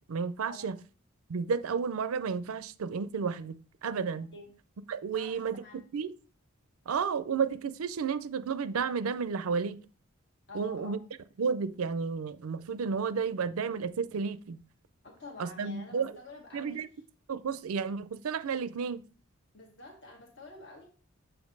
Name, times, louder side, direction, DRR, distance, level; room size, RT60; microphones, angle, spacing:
voice 1, 0.1-0.8 1.3-3.6 3.8-4.3 4.9-5.5 5.9-6.1 6.9-9.8 10.5-11.0 11.4-14.6 15.4-16.1 16.5-16.9 17.3-19.0, right 5 dB, 85° right, 0.5 m, -32 dB
voice 2, 5.1-5.8 10.5-11.0 15.0-16.8 19.5-20.9, left 2 dB, 55° left, 1.4 m, -48 dB
7.2 x 2.7 x 5.3 m
head